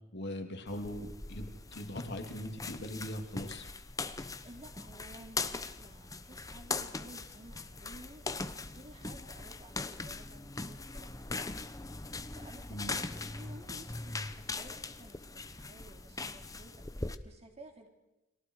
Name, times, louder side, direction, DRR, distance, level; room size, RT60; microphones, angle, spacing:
voice 1, 0.1-3.7 12.7-13.0, left 1 dB, 60° left, 4 dB, 3.0 m, -40 dB
sound 1, 0.7-17.2, left 3 dB, 15° left, 0.9 m, -41 dB
voice 2, 4.4-11.8 12.3-17.9, right 1 dB, 35° right, 3 dB, 3.4 m, -54 dB
30.0 x 23.5 x 4.8 m, 0.99 s
head